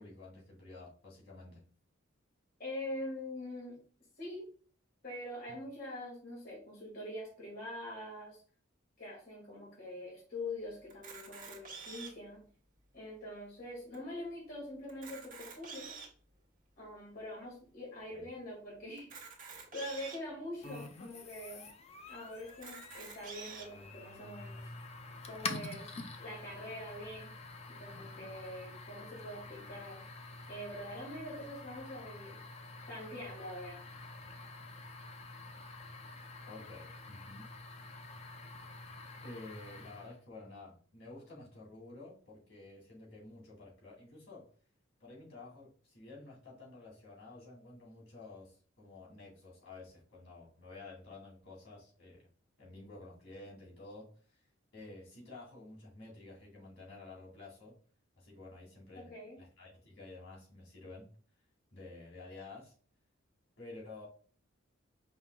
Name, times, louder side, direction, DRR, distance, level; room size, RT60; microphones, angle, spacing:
voice 1, 0.0-1.6 18.1-18.3 36.5-37.5 39.2-44.5 45.0-52.3 52.6-54.4 54.7-57.7 58.2-59.1 59.4-61.1 61.7-62.7 63.6-64.1, left 2 dB, 75° left, -4 dB, 2.3 m, -51 dB
voice 2, 2.6-3.8 4.2-4.5 5.0-8.4 9.0-12.4 12.9-16.0 16.8-19.1 19.7-21.7 22.1-24.7 25.2-25.9 26.2-27.3 27.7-30.0 30.5-32.4 32.9-33.8 58.9-59.4, left 1 dB, 50° left, -4 dB, 2.0 m, -44 dB
Camera, 10.9-12.3 12.9-13.0 13.3-13.4 13.9-14.0 14.8-16.2 16.8-16.9 19.0-20.2 20.9-21.0 21.3-21.4 22.5-23.7, right 5 dB, 45° right, 1.1 m, -48 dB
sound 1, 20.6-40.2, left 3 dB, 30° left, 0.5 m, -47 dB
5.3 x 3.6 x 2.3 m, 0.42 s
head